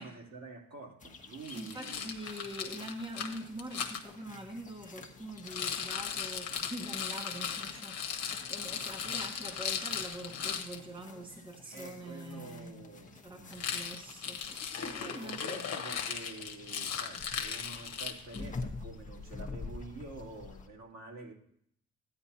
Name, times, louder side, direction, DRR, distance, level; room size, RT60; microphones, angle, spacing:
voice 1, 0.0-2.1 3.0-3.1 11.7-13.8 14.7-21.3, right 3 dB, 65° right, -3 dB, 3.1 m, -48 dB
sound 1, 1.0-20.7, left 3 dB, 25° left, 1.1 m, -49 dB
Rattle, 1.4-4.0 5.4-10.8 13.5-18.5, left 7 dB, 55° left, 1.2 m, -37 dB
voice 2, 1.5-12.8 13.2-15.4, right 1 dB, 15° right, 2 dB, 1.3 m, -44 dB
12.5 x 10.0 x 2.8 m, 0.69 s
cardioid pair, 90°, 30 cm